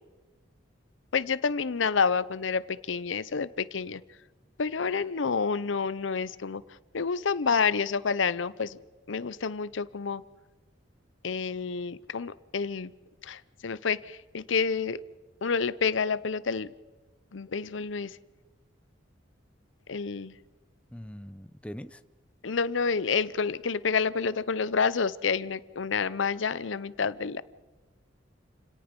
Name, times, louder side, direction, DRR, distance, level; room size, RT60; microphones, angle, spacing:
voice 1, 1.1-4.0 4.6-6.6 6.9-8.8 9.1-10.2 11.2-12.9 13.2-15.0 15.4-16.7 17.3-18.2 19.9-20.4 22.4-27.4, left 5 dB, 80° left, 18 dB, 0.7 m, -29 dB
voice 2, 20.9-22.0, equal, 5° left, 13 dB, 0.6 m, -42 dB
29.0 x 18.0 x 5.3 m, 1.2 s
head